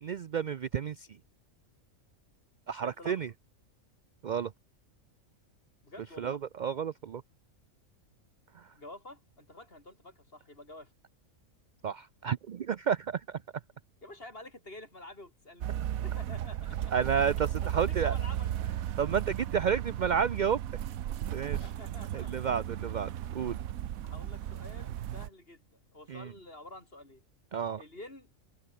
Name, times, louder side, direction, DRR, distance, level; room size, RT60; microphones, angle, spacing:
voice 1, 0.0-1.1 2.7-3.3 4.2-4.5 6.2-7.2 11.8-13.4 16.9-18.2 19.0-20.6 21.3-21.6 22.1-23.6 26.1-26.3 27.5-27.8, right 7 dB, 60° right, 0.5 m, -31 dB
voice 2, 2.8-3.2 5.8-6.4 8.7-10.9 14.0-16.9 17.6-18.5 21.6-22.5 22.8-22.9 24.0-27.2 27.8-28.3, left 1 dB, 45° left, 5.6 m, -49 dB
sound 1, 15.6-25.3, right 11 dB, 85° right, 1.2 m, -35 dB
omnidirectional pair, 1.4 m